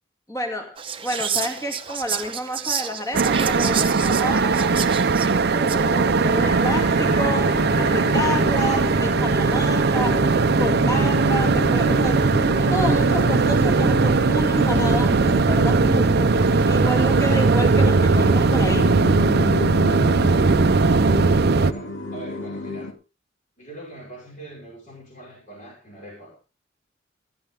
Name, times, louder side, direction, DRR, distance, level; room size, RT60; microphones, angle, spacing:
voice 1, 0.3-4.8 5.2-12.3 12.6-16.3 16.7-18.9, equal, 15° left, 2.6 m, -29 dB
Whispering, 0.8-5.9, right 8 dB, 25° right, 0.9 m, -30 dB
sound 1, 3.1-21.7, right 4 dB, 55° right, 0.6 m, -19 dB
voice 2, 5.8-6.2 21.5-22.9 23.6-26.4, right 2 dB, 40° left, 5.5 m, -41 dB
sound 2, 6.4-22.9, left 1 dB, 75° left, 2.5 m, -31 dB
16.0 x 13.0 x 3.5 m
head